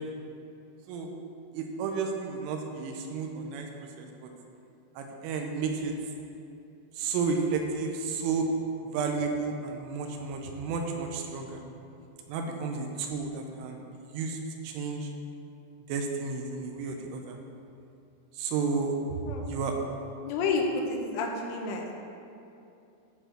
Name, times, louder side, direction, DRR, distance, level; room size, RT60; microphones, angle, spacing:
voice 1, 1.5-3.7 4.0-4.3 5.0-5.9 7.0-8.5 8.8-11.6 12.3-14.4 14.6-15.1 15.9-17.4 18.4-19.0 19.3-19.7, right 5 dB, 85° right, 3 dB, 3.3 m, -32 dB
voice 2, 20.3-21.9, left 3 dB, 85° left, 1 dB, 3.4 m, -30 dB
13.5 x 4.6 x 4.4 m, 2.6 s
omnidirectional pair, 5.5 m